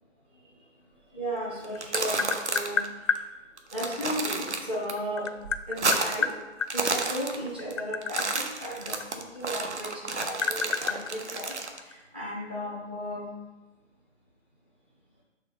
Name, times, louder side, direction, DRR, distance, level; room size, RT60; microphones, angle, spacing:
voice 1, 1.1-3.2 3.7-5.3 5.7-6.3 6.7-13.3, equal, 10° right, -7 dB, 0.5 m, -35 dB
Tap, 1.4-3.2 4.6-6.7 7.5-9.6 9.9-11.9, left 6 dB, 75° left, 0.5 m, -30 dB
sound 1, 1.6-2.9 3.2-3.3 3.6-4.9 5.3-6.3 6.6-7.7 8.0-11.8, right 3 dB, 65° right, 0.9 m, -31 dB
7.1 x 3.5 x 5.1 m, 1.2 s
figure-of-eight pair, 140°, 38 cm